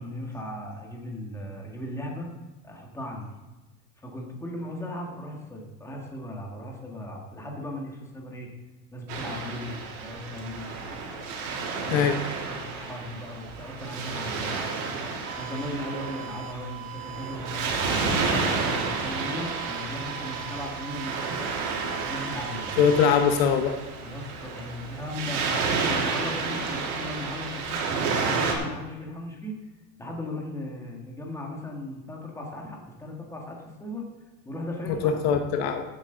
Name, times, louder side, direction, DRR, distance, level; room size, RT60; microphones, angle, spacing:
voice 1, 0.0-2.3 2.6-3.3 4.0-8.5 8.9-10.7 11.8-12.0 12.5-14.7 15.3-21.5 22.1-22.8 24.0-29.6 30.0-34.1 34.5-35.4, left 1 dB, 5° left, 0 dB, 1.7 m, -37 dB
Waves surf, 9.1-28.5, right 4 dB, 85° right, 2.9 m, -31 dB
sound 1, 15.2-23.1, right 14 dB, 35° right, 1.8 m, -41 dB
voice 2, 22.8-23.7 34.9-35.8, left 7 dB, 55° left, 6 dB, 1.0 m, -22 dB
15.0 x 8.5 x 3.9 m, 1.2 s
supercardioid pair, 155°, 42 cm